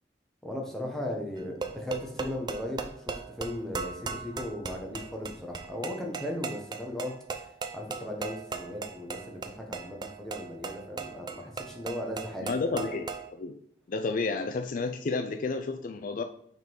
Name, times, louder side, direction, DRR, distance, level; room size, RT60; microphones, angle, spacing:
voice 1, 0.4-12.8, left 1 dB, 5° left, 0 dB, 1.1 m, -37 dB
sound 1, 1.4-13.3, right 4 dB, 25° right, 0.5 m, -38 dB
voice 2, 12.4-13.6 13.9-16.2, left 3 dB, 45° left, 7 dB, 0.4 m, -31 dB
5.6 x 3.8 x 4.5 m, 0.69 s
head